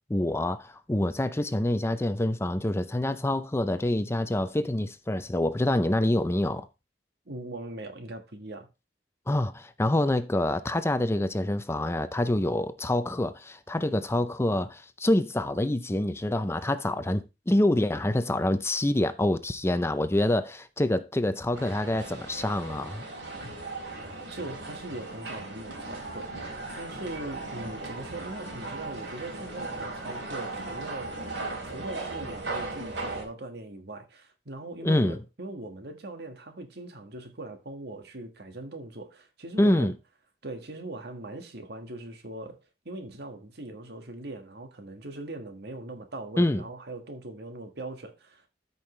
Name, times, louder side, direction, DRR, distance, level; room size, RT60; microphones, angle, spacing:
voice 1, 0.1-6.7 9.3-23.0 34.8-35.2 39.6-39.9 46.4-46.6, left 1 dB, 15° left, 0.5 m, -26 dB
voice 2, 7.3-8.7 24.3-31.2 31.6-39.9 40.4-42.6 42.9-48.5, right 2 dB, 65° right, 1.7 m, -41 dB
sound 1, 21.5-33.2, right 2 dB, 85° right, 3.6 m, -37 dB
13.5 x 5.7 x 3.2 m
head